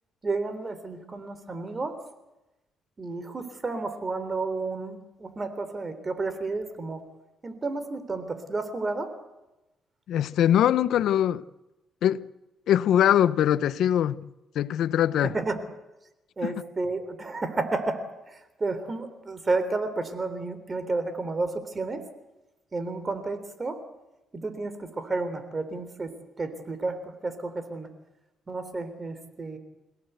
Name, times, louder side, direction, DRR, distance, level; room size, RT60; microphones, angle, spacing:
voice 1, 0.2-2.0 3.0-7.0 7.4-9.1 15.3-15.6 16.4-22.0 22.7-23.8 24.3-27.9 28.5-29.6, right 3 dB, 30° right, 3.5 m, -31 dB
voice 2, 10.1-11.4 12.0-12.3 12.7-14.2 14.5-15.3 16.4-16.5, left 10 dB, 75° left, 0.8 m, -22 dB
27.5 x 17.5 x 8.1 m
cardioid pair, 90°, 0 cm